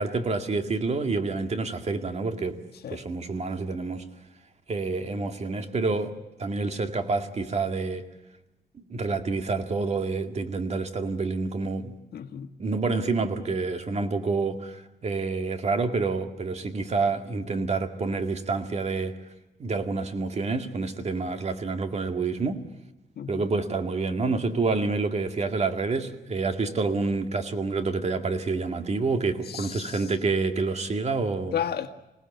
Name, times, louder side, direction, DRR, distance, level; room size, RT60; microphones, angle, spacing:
voice 1, 0.0-2.6 2.9-4.0 4.7-8.1 8.7-12.0 12.6-19.2 19.6-22.6 23.3-31.6, right 3 dB, 40° right, 2.1 m, -28 dB
voice 2, 12.1-12.5 23.2-23.4 29.5-30.0 31.5-32.0, left 9 dB, 80° left, 1.7 m, -32 dB
26.5 x 18.0 x 8.1 m
wide cardioid pair, 140°, 16 cm